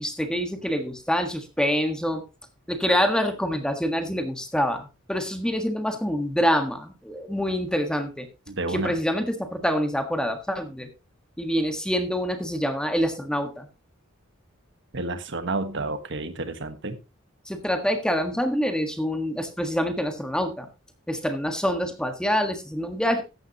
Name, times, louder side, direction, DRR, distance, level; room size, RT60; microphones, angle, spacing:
voice 1, 0.0-2.2 2.7-8.3 8.7-10.9 11.4-13.7 17.5-20.7 21.1-23.2, equal, 5° left, 6 dB, 1.6 m, -26 dB
voice 2, 8.5-8.9 14.9-17.0, right 2 dB, 60° right, 9 dB, 1.4 m, -30 dB
14.0 x 9.3 x 3.0 m, 0.28 s
head